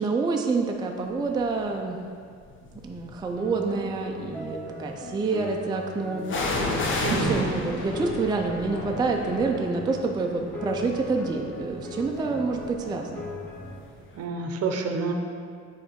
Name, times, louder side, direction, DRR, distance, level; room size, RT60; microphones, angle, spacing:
voice 1, 0.0-2.0 2.8-6.7 7.0-13.3, right 4 dB, 15° right, 2 dB, 0.4 m, -28 dB
sound 1, 1.3-1.7 2.4-3.4 6.3-13.9 14.2-14.3, left 2 dB, 40° left, 0.8 m, -33 dB
sound 2, 3.4-13.8, left 3 dB, 5° left, 1.1 m, -39 dB
voice 2, 7.0-7.5 14.1-15.1, right 4 dB, 55° right, 4 dB, 0.7 m, -28 dB
6.3 x 3.3 x 4.5 m, 2.2 s
cardioid pair, 105°, 29 cm